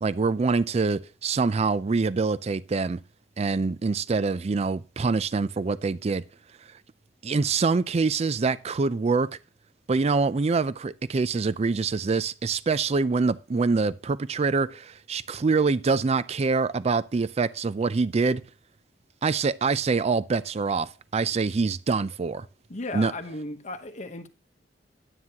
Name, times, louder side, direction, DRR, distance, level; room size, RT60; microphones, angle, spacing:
voice 1, 0.0-3.0 3.4-6.2 7.2-9.3 9.9-18.4 19.2-22.5 22.9-23.1, right 4 dB, 35° right, 0.4 m, -25 dB
voice 2, 22.7-24.3, left 2 dB, 40° left, 1.0 m, -35 dB
11.0 x 9.5 x 2.9 m
head